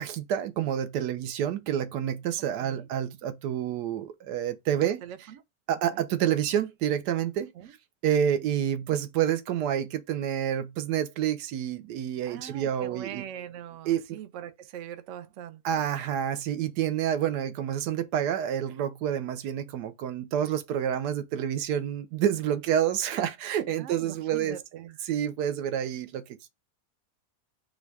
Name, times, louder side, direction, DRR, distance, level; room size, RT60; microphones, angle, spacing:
voice 1, 0.0-5.0 5.7-7.5 8.0-13.2 13.9-14.2 15.6-24.6 25.1-26.2, right 9 dB, 80° right, 1.2 m, -28 dB
voice 2, 4.8-5.4 5.9-6.0 7.5-7.7 12.3-15.9 23.8-25.0, right 10 dB, 65° right, 0.8 m, -42 dB
4.4 x 2.3 x 4.5 m
omnidirectional pair, 1.8 m